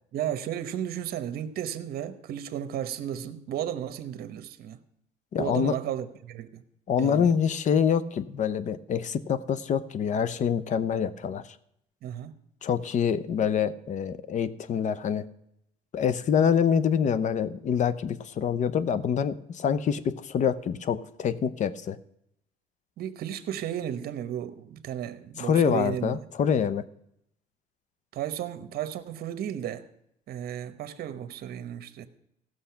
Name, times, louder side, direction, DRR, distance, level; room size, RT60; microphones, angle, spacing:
voice 1, 0.1-4.8 5.4-6.6 7.0-7.3 12.0-12.3 23.0-26.2 28.1-29.8 30.3-32.1, right 10 dB, 65° right, 1.0 m, -34 dB
voice 2, 5.3-5.8 6.9-11.4 12.6-15.3 15.9-22.0 25.4-26.8, left 7 dB, 45° left, 0.7 m, -26 dB
15.0 x 6.6 x 5.7 m
cardioid pair, 110°, 17 cm